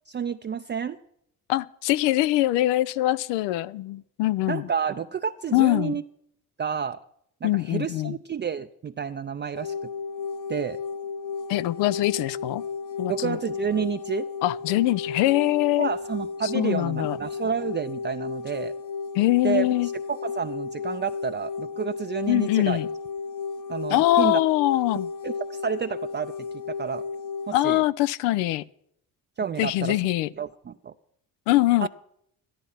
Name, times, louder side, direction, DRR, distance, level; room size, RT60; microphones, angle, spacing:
voice 1, 0.1-1.0 4.5-6.0 6.6-7.0 7.4-9.9 10.5-10.8 13.1-14.3 15.8-18.7 19.4-22.8 23.7-24.4 25.2-26.3 26.7-27.0 27.5-27.8 29.4-30.0 30.4-30.9 31.8-31.9, right 7 dB, 25° right, 0.5 m, -30 dB
voice 2, 1.5-4.7 5.5-6.0 7.4-8.2 11.5-12.6 13.0-13.4 14.4-15.9 16.4-17.2 19.1-19.9 22.3-22.9 23.9-25.1 27.5-28.6 29.6-30.3 31.5-31.9, left 16 dB, 85° left, 0.5 m, -23 dB
sound 1, 9.5-27.6, left 5 dB, 45° left, 1.0 m, -34 dB
13.0 x 11.5 x 5.7 m
supercardioid pair, 70°, 41 cm